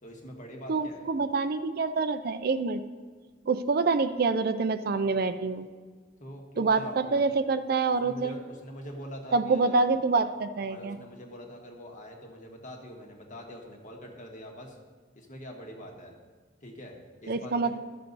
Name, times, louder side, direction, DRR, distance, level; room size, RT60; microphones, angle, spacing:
voice 1, 0.0-1.1 6.2-7.3 7.9-9.9 10.7-14.8 15.1-16.1 16.6-17.0 17.2-17.7, equal, 45° left, 1 dB, 1.6 m, -44 dB
voice 2, 0.7-2.8 3.4-5.7 6.6-8.3 9.3-11.0 17.3-17.8, right 4 dB, 55° right, 11 dB, 0.4 m, -26 dB
13.0 x 6.7 x 4.0 m, 1.5 s
head